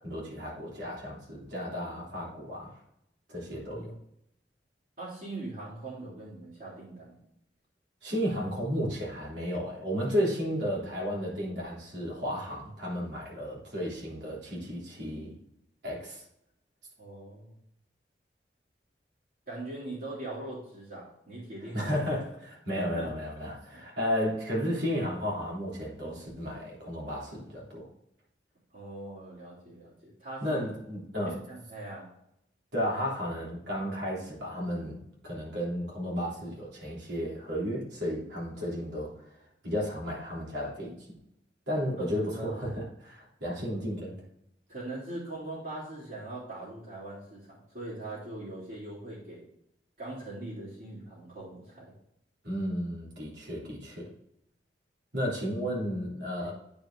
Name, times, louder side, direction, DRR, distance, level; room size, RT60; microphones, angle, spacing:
voice 1, 0.0-2.7 3.3-3.9 8.0-15.3 15.8-16.2 21.7-27.9 30.4-31.4 32.7-39.1 39.6-40.9 41.7-44.1 52.4-54.1 55.1-56.5, equal, 90° right, -4 dB, 3.3 m, -33 dB
voice 2, 3.4-4.0 5.0-7.2 17.0-17.6 19.5-21.9 22.7-23.1 23.7-23.8 28.7-30.6 31.2-32.1 42.0-42.7 44.7-49.5 50.0-51.9 56.4-56.5, right 2 dB, 60° right, -10 dB, 3.1 m, -41 dB
9.1 x 4.9 x 3.8 m, 0.77 s
head